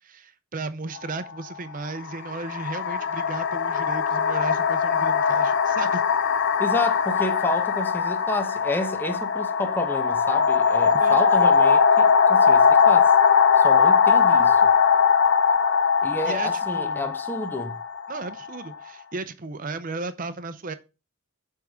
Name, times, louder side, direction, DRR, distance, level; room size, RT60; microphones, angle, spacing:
voice 1, 0.0-6.0 11.0-11.2 16.2-17.1 18.1-20.7, right 3 dB, 40° right, 0.6 m, -35 dB
sound 1, 1.0-1.1 2.1-18.7, left 6 dB, 55° left, 0.5 m, -20 dB
voice 2, 6.6-13.1 13.6-14.7 16.0-17.8, left 2 dB, 10° left, 0.6 m, -30 dB
7.6 x 3.6 x 5.0 m
head